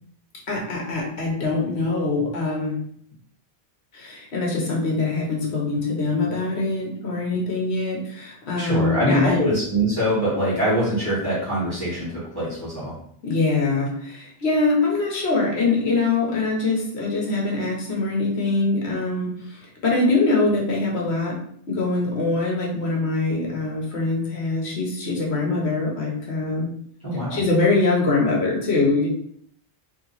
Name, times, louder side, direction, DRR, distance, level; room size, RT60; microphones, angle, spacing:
voice 1, 0.5-2.8 3.9-9.4 13.2-21.4 21.7-26.7 27.3-29.1, left 3 dB, 75° left, -2 dB, 1.3 m, -23 dB
voice 2, 8.6-12.9 27.0-27.4, equal, 20° left, -9 dB, 1.6 m, -23 dB
3.3 x 2.9 x 4.1 m, 0.66 s
omnidirectional pair, 1.1 m